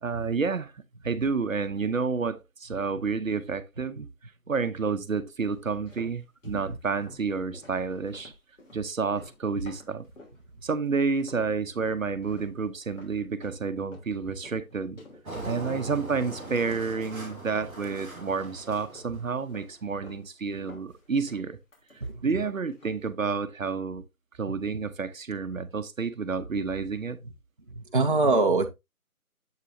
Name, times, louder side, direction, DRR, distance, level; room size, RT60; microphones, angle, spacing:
voice 1, 0.0-4.1 4.5-8.3 8.7-10.0 10.6-15.0 15.4-21.6 22.2-24.0 24.4-27.2, right 5 dB, 65° right, 0.8 m, -30 dB
sound 1, 5.5-10.4 10.7-11.5 11.8-18.0 18.3-19.2 19.5-20.3 20.5-22.4 22.7-23.1, left 1 dB, 55° left, 3.3 m, -51 dB
voice 2, 6.4-6.8 15.3-15.6 22.0-22.3 27.7-28.7, right 3 dB, 35° right, 0.7 m, -25 dB
Engine, 15.2-19.7, right 2 dB, ahead, 0.8 m, -41 dB
7.5 x 6.2 x 2.6 m
figure-of-eight pair, 165°, 44 cm